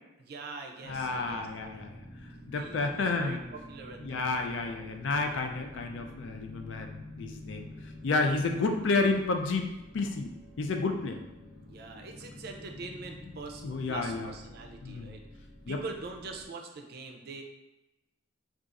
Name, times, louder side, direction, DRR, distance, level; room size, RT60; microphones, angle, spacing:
voice 1, 0.2-1.9 2.6-4.5 11.6-13.6 13.9-15.2 15.7-17.4, right 3 dB, 55° right, 3 dB, 0.4 m, -44 dB
sound 1, 0.8-16.5, left 1 dB, 25° left, 1.2 m, -49 dB
voice 2, 0.9-1.9 2.5-3.4 4.0-7.7 8.0-10.3 10.6-11.2 13.6-14.3 14.8-15.1 15.7-15.8, left 3 dB, 75° left, 4 dB, 0.4 m, -30 dB
4.0 x 2.4 x 2.4 m, 1.0 s
head